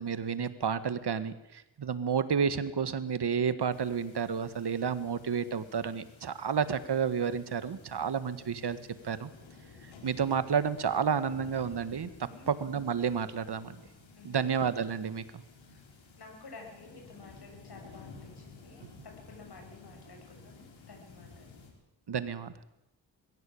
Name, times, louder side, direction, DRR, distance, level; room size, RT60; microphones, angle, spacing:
voice 1, 0.0-8.8 9.0-9.3 10.0-12.1 12.5-13.8 14.2-15.4 22.1-22.5, right 7 dB, 60° right, 12 dB, 1.9 m, -31 dB
sound 1, 3.7-21.7, left 4 dB, 85° left, 5.3 m, -53 dB
voice 2, 16.2-21.5, left 3 dB, 55° left, 2 dB, 7.8 m, -52 dB
21.5 x 16.5 x 8.8 m, 0.90 s
cardioid pair, 55°, 45 cm